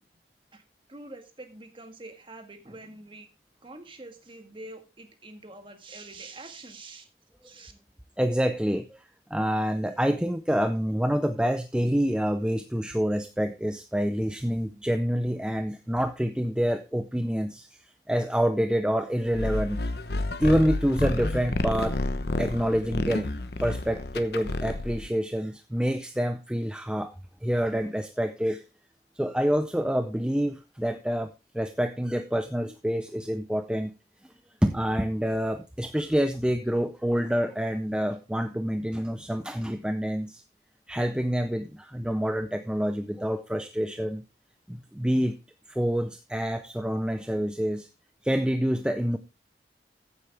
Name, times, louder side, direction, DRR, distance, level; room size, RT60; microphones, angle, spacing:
voice 1, 0.9-3.3 3.6-7.1 7.4-7.7, right 2 dB, 30° right, 6 dB, 1.7 m, -45 dB
voice 2, 8.2-19.8 20.4-22.1 22.4-23.3 23.6-27.2 27.4-28.6 29.2-33.9 34.6-40.4 40.9-44.2 44.7-45.4 45.7-47.9 48.2-49.2, equal, 5° right, 8 dB, 0.5 m, -27 dB
sound 1, 19.3-25.1, left 2 dB, 65° left, 1.0 m, -30 dB
14.5 x 8.0 x 3.4 m, 0.27 s
head